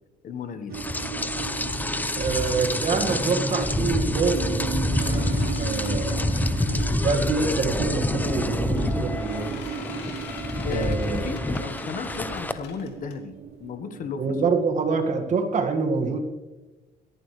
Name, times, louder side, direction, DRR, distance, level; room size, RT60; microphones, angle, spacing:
voice 1, 0.2-0.8 10.6-13.3 13.6-14.3, left 6 dB, 50° left, 9 dB, 1.5 m, -34 dB
Rain, 0.7-12.5, left 2 dB, 10° left, 0.7 m, -27 dB
sound 1, 0.7-15.4, right 8 dB, 65° right, 0.8 m, -36 dB
voice 2, 2.2-5.3 5.6-6.3 7.0-9.6 10.7-11.3 14.2-16.2, right 4 dB, 45° right, 5 dB, 2.0 m, -26 dB
sound 2, 4.9-7.3 8.3-13.7, left 6 dB, 80° left, 2.5 m, -45 dB
17.5 x 14.0 x 3.4 m, 1.2 s
cardioid pair, 110°, 17 cm